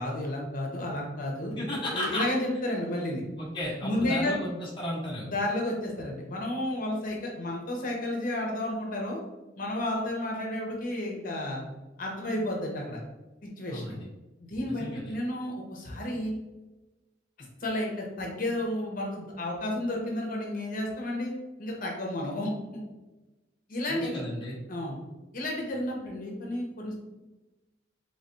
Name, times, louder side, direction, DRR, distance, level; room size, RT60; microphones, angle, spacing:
voice 1, 0.0-1.5 1.9-3.2 3.8-4.3 5.2-9.2 9.6-11.6 12.0-13.0 13.4-13.9 14.4-16.3 17.6-22.8 23.7-24.2 24.7-25.0 25.3-26.9, left 1 dB, 50° left, -1 dB, 0.9 m, -32 dB
voice 2, 1.5-2.3 3.4-5.3 13.7-14.1 14.6-15.1 23.9-24.5, left 1 dB, 30° left, -5 dB, 1.1 m, -34 dB
3.6 x 3.3 x 2.7 m, 1.1 s
head